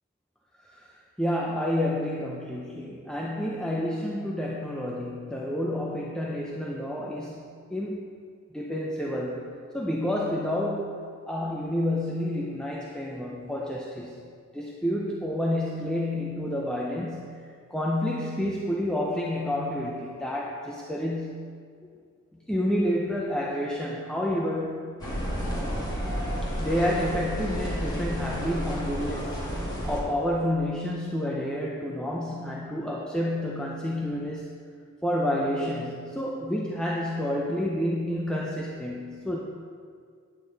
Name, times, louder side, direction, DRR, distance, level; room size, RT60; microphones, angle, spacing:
voice 1, 1.2-8.1 8.5-14.3 14.5-17.4 17.7-21.5 22.5-24.9 25.3-25.4 26.4-34.5 35.0-39.4, left 1 dB, 5° left, -3 dB, 0.6 m, -29 dB
sound 1, 25.0-30.0, equal, 20° left, 2.1 m, -31 dB
9.5 x 8.6 x 4.0 m, 2.1 s
head